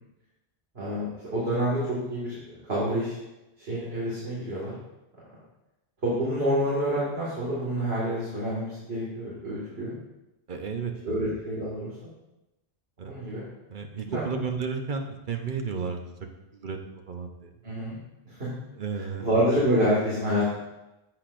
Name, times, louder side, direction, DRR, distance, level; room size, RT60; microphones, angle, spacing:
voice 1, 0.7-3.2 3.7-4.7 6.0-9.9 11.0-11.9 13.0-13.4 14.1-14.2 17.6-17.9 18.3-18.5 19.2-20.6, equal, 70° right, -8 dB, 2.4 m, -27 dB
voice 2, 10.5-11.2 13.0-13.1 13.7-16.1 16.5-17.5 18.7-19.3, right 5 dB, 50° right, 4 dB, 1.0 m, -33 dB
10.0 x 8.0 x 2.6 m, 0.97 s
omnidirectional pair, 1.1 m